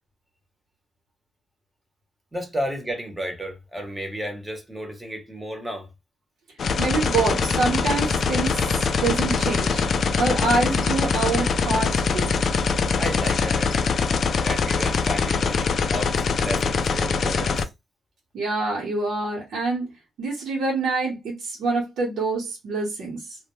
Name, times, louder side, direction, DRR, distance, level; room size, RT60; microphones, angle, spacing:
voice 1, 2.3-5.9 13.0-13.9 14.4-17.7, equal, 10° right, 0.7 m, -32 dB
sound 1, 6.6-17.6, left 5 dB, 55° left, 0.3 m, -23 dB
voice 2, 6.8-9.8 10.2-12.4 18.3-19.9 20.2-23.4, right 3 dB, 80° right, 0.9 m, -26 dB
2.2 x 2.0 x 2.9 m
cardioid pair, 120°, 0 cm